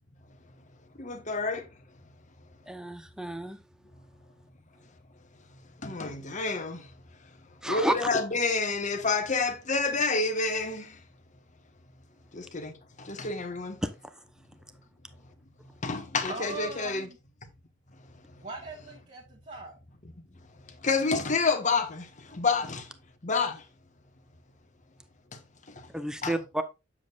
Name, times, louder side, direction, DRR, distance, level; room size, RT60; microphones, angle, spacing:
voice 1, 1.0-1.7 5.8-6.9 7.6-11.0 12.3-13.8 15.8-17.1 20.7-22.9 23.2-23.6 25.3-25.4 25.7-25.9 26.2-26.4, left 4 dB, 40° left, 1.3 m, -29 dB
voice 2, 2.7-3.6 7.6-7.9 13.8-13.9 25.9-26.6, right 1 dB, 5° right, 0.8 m, -30 dB
voice 3, 16.3-17.2 18.4-19.7, right 3 dB, 40° right, 1.7 m, -40 dB
8.7 x 7.4 x 2.4 m
head